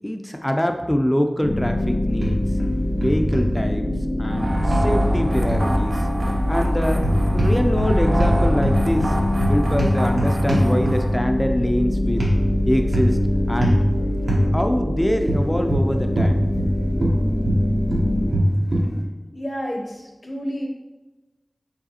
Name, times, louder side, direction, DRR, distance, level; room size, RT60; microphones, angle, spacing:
voice 1, 0.0-2.4 3.0-3.9 4.2-6.1 6.5-7.0 7.3-9.2 9.5-12.2 12.7-13.2 13.5-13.9 14.5-16.4, equal, 15° left, 5 dB, 0.3 m, -24 dB
sound 1, 1.4-18.3, left 1 dB, 65° left, 1.1 m, -24 dB
sound 2, 2.2-2.7 3.0-3.5 4.7-5.7 6.9-7.9 8.2-11.2 12.2-12.4 12.9-13.2 13.6-13.8 14.3-14.5 15.3-16.7 17.0-18.9, equal, 90° right, 0.8 m, -22 dB
sound 3, 4.3-11.2, right 1 dB, 60° right, 0.5 m, -26 dB
voice 2, 19.3-20.7, equal, 50° left, 0 dB, 0.7 m, -30 dB
4.8 x 3.0 x 2.8 m, 1.1 s
wide cardioid pair, 50°, 0 cm